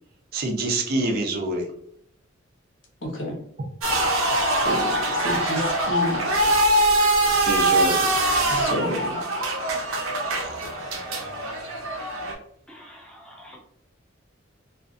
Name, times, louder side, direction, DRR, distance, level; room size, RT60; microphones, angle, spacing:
voice 1, 0.3-1.7 7.4-8.1 10.3-10.7, right 2 dB, 50° right, 2 dB, 0.5 m, -26 dB
voice 2, 3.0-3.4 4.5-6.2 8.5-9.2, equal, 65° left, 0 dB, 0.8 m, -30 dB
sound 1, 3.8-12.3, right 1 dB, 90° right, 0.6 m, -23 dB
voice 3, 12.7-13.6, equal, 5° left, -2 dB, 0.5 m, -46 dB
2.4 x 2.3 x 2.4 m, 0.67 s
head